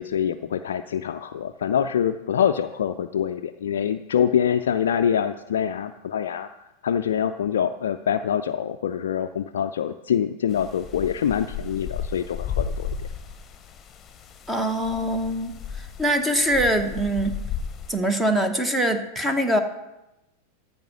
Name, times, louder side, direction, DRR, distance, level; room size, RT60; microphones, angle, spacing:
voice 1, 0.0-6.5 6.8-12.9, left 8 dB, 60° left, 7 dB, 0.4 m, -25 dB
sound 1, 10.5-18.0, left 7 dB, 25° left, 1.0 m, -34 dB
voice 2, 14.5-15.5 15.8-17.4 17.9-19.6, right 1 dB, 10° right, 7 dB, 0.9 m, -23 dB
13.5 x 5.4 x 6.2 m, 0.95 s
figure-of-eight pair, 90°, 0 cm